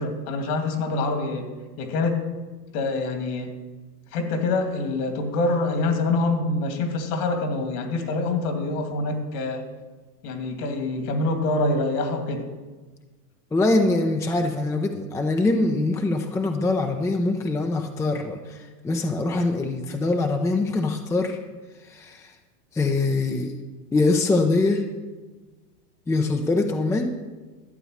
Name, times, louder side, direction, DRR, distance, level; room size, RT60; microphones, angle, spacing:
voice 1, 0.0-1.5 1.8-2.2 2.7-3.5 4.1-9.6 10.2-12.5, left 2 dB, 60° left, 5 dB, 2.5 m, -25 dB
voice 2, 13.5-21.4 21.8-22.3 22.7-23.5 23.9-24.8 26.1-27.2, left 2 dB, 5° left, 4 dB, 0.6 m, -23 dB
12.5 x 7.9 x 6.5 m, 1.3 s
hypercardioid pair, 120°, 49 cm